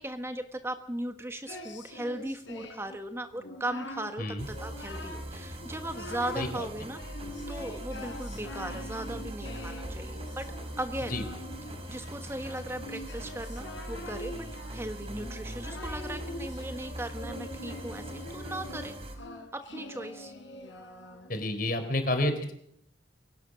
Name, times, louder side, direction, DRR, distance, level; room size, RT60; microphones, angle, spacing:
voice 1, 0.0-7.0 7.5-10.5 10.8-11.2 11.9-19.0 19.5-20.3, right 1 dB, 15° right, 7 dB, 1.3 m, -38 dB
Singing, 1.5-3.0 3.3-4.1 4.5-5.3 5.6-6.5 6.9-21.4, left 1 dB, 80° left, 4.6 m, -44 dB
sound 1, 4.4-19.2, right 1 dB, 30° right, 5.2 m, -41 dB
voice 2, 6.4-6.7 11.1-11.2 21.3-22.5, left 1 dB, 50° left, 7 dB, 4.1 m, -29 dB
23.5 x 18.0 x 6.3 m, 0.70 s
head